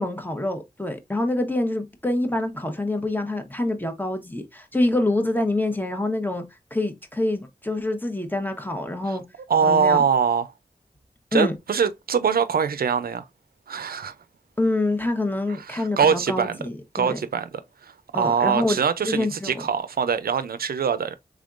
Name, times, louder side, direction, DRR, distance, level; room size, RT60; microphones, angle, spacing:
voice 1, 0.0-6.4 6.7-9.2 9.6-10.0 11.3-11.5 13.9-14.0 14.6-17.2 18.1-18.8 19.0-19.6, left 2 dB, 10° left, 1.0 m, -26 dB
voice 2, 9.5-10.5 11.3-13.2 13.7-14.1 15.7-16.6 16.9-17.5 17.8-21.1, right 6 dB, 80° right, 0.4 m, -23 dB
3.5 x 3.5 x 2.4 m
cardioid pair, 45°, 15 cm